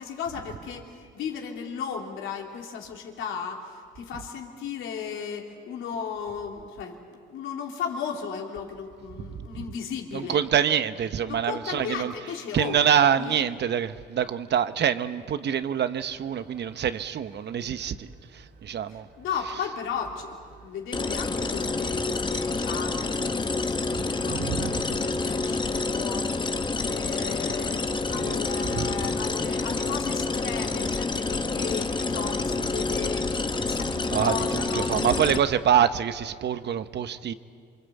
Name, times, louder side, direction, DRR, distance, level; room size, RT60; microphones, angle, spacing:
voice 1, 0.0-7.0 7.3-10.4 11.3-12.8 13.2-13.4 18.9-26.3 26.8-27.8 28.1-35.3, left 7 dB, 85° left, 3.4 m, -35 dB
voice 2, 10.1-12.1 12.5-19.1 24.3-24.8 28.1-28.4 28.7-28.9 34.1-37.3, right 9 dB, 60° right, 1.1 m, -26 dB
sound 1, 15.9-35.9, right 5 dB, 80° right, 3.3 m, -51 dB
sound 2, 20.9-35.4, left 3 dB, 25° left, 1.2 m, -28 dB
27.5 x 24.5 x 8.4 m
cardioid pair, 90°, 20 cm